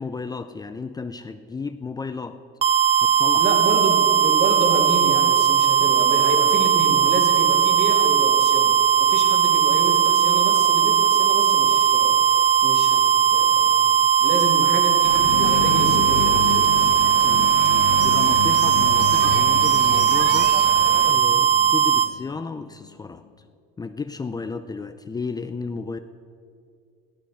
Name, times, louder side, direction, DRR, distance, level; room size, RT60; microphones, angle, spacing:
voice 1, 0.0-2.4 3.0-3.5 17.2-17.6 18.0-20.6 21.0-23.2 23.8-26.0, left 4 dB, 20° left, 9 dB, 0.6 m, -33 dB
sound 1, 2.6-22.1, right 8 dB, 30° right, 0.4 m, -18 dB
voice 2, 3.4-16.7 21.3-21.5, right 2 dB, 55° right, 1 dB, 3.0 m, -29 dB
sound 2, 15.0-21.1, right 9 dB, 70° right, 0.9 m, -34 dB
sound 3, 15.2-23.0, left 16 dB, 85° left, 0.5 m, -32 dB
14.5 x 12.5 x 6.3 m, 2.3 s
supercardioid pair, 95°, 21 cm